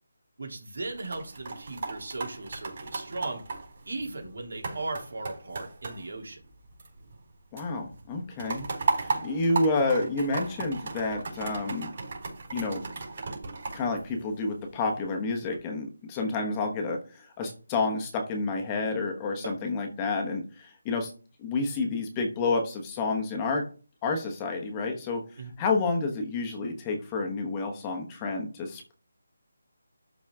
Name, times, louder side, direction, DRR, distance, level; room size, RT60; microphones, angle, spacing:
voice 1, 0.4-3.4 3.9-6.4 9.1-9.2 19.4-19.5 25.4-25.5, right 2 dB, 70° right, 1 dB, 3.1 m, -37 dB
sound 1, 0.8-7.3 7.6-14.8 15.3-15.6, right 4 dB, 45° right, 4.8 m, -36 dB
voice 2, 7.5-8.7 9.0-11.9 12.5-12.8 13.7-21.1 21.4-23.6 24.0-25.2 25.6-28.9, left 3 dB, 15° left, 3 dB, 1.1 m, -29 dB
12.0 x 4.1 x 3.6 m, 0.38 s
figure-of-eight pair, 165°, 0 cm